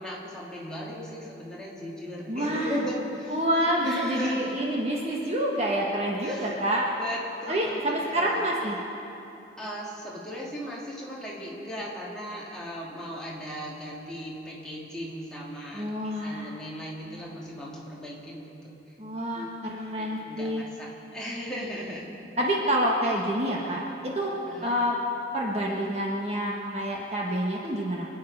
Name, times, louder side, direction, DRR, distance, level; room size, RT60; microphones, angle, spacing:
voice 1, 0.0-3.4 3.7-4.6 6.2-6.6 6.9-8.4 9.6-18.8 19.3-19.5 20.0-22.1 24.5-24.8, equal, 5° left, -6 dB, 2.6 m, -37 dB
voice 2, 2.3-2.8 3.3-6.9 7.5-8.8 15.7-16.5 19.0-20.6 22.4-24.3 24.6-24.9 25.3-28.1, equal, 35° right, -2 dB, 1.3 m, -27 dB
26.0 x 9.5 x 5.4 m, 3.0 s
head